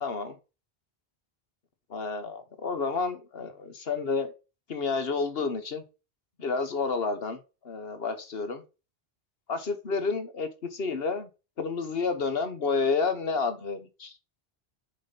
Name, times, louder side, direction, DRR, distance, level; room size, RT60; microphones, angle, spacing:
voice 1, 0.0-0.4 1.9-4.3 4.7-5.8 6.4-7.4 7.6-8.6 9.5-11.3 11.6-14.1, left 4 dB, 65° left, 1.3 m, -30 dB
7.3 x 4.3 x 5.2 m
omnidirectional pair, 1.1 m